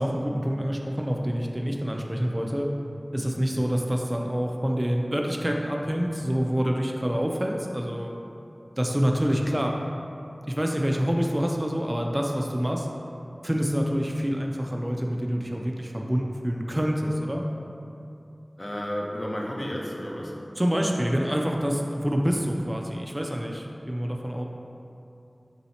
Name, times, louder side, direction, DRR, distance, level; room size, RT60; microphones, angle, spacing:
voice 1, 0.0-2.7 3.1-8.1 8.8-9.7 10.5-12.9 13.4-17.5 20.6-24.5, equal, 25° right, 1 dB, 0.3 m, -27 dB
voice 2, 18.6-20.3, equal, 45° left, -2 dB, 0.5 m, -32 dB
3.1 x 2.8 x 4.1 m, 2.7 s
wide cardioid pair, 45°, 0 cm